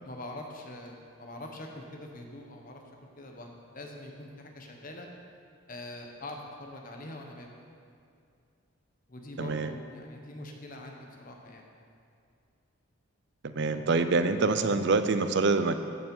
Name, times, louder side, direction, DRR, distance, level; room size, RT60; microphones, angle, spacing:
voice 1, 0.0-2.8 3.2-5.1 5.7-7.5 9.1-11.6, left 1 dB, 40° left, 2 dB, 1.2 m, -43 dB
voice 2, 9.4-9.7 13.4-15.8, right 3 dB, 55° right, 10 dB, 0.5 m, -26 dB
14.0 x 5.5 x 5.4 m, 2.4 s
head